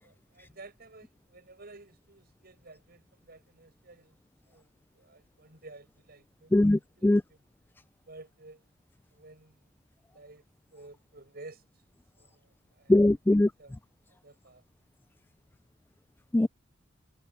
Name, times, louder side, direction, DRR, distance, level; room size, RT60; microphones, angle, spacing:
voice 1, 0.0-4.2 4.5-7.4 8.1-8.6 9.1-9.7 10.1-10.4 10.7-11.6 12.2-13.0 13.6-13.7 14.1-14.6, right 2 dB, 50° right, 7.4 m, -52 dB
voice 2, 6.5-7.2 12.9-13.5 16.3-16.5, left 1 dB, 10° left, 0.3 m, -21 dB
head